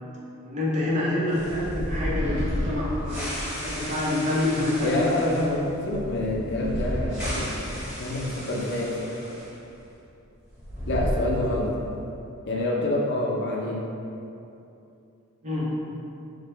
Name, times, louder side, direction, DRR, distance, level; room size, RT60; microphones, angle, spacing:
voice 1, 0.4-5.5 15.4-15.7, left 1 dB, 35° right, -6 dB, 0.7 m, -27 dB
sound 1, 1.3-9.5 9.8-9.9 10.5-11.9, equal, 5° right, 1.2 m, -32 dB
voice 2, 4.8-9.1 10.9-11.7 12.5-13.9, left 1 dB, 55° left, -2 dB, 0.5 m, -27 dB
4.7 x 2.1 x 3.2 m, 2.7 s
head